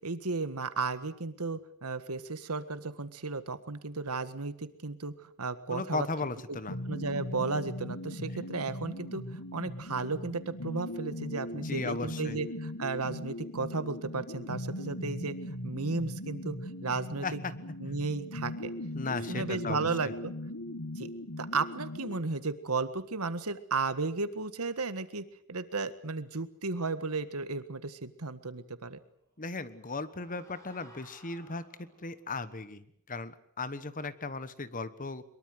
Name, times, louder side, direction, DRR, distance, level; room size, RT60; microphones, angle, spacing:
voice 1, 0.0-6.1 6.5-6.6 6.9-9.2 9.5-15.3 15.6-17.4 17.8-18.7 19.3-20.3 21.0-21.1 21.4-29.0, right 3 dB, 85° right, 12 dB, 1.7 m, -34 dB
voice 2, 5.7-6.8 11.6-12.4 17.2-17.5 18.9-20.1 29.4-35.2, left 3 dB, 40° left, 14 dB, 1.3 m, -37 dB
sound 1, 6.7-22.2, left 1 dB, 75° left, 1.9 m, -39 dB
sound 2, 29.3-32.2, equal, 15° left, 7.3 m, -58 dB
23.0 x 22.5 x 8.0 m, 0.67 s
head